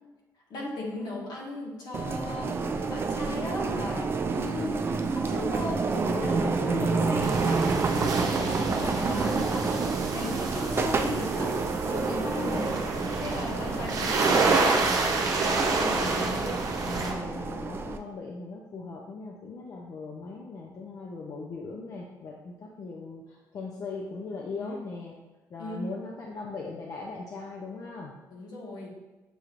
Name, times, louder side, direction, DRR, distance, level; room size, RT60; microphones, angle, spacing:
voice 1, 0.5-11.6 11.8-14.6 24.6-24.7 25.6-25.9 28.3-28.9, left 2 dB, 75° left, -2 dB, 1.2 m, -36 dB
rolling bag, 1.9-18.0, right 4 dB, 35° right, 0.3 m, -29 dB
voice 2, 4.6-5.1 10.2-10.5 12.4-12.8 15.7-25.1 25.5-28.1, left 3 dB, 55° left, -2 dB, 0.5 m, -39 dB
sound 1, 7.2-17.1, right 3 dB, 55° right, 0.7 m, -28 dB
6.8 x 3.1 x 2.5 m, 1.2 s
cardioid pair, 105°, 7 cm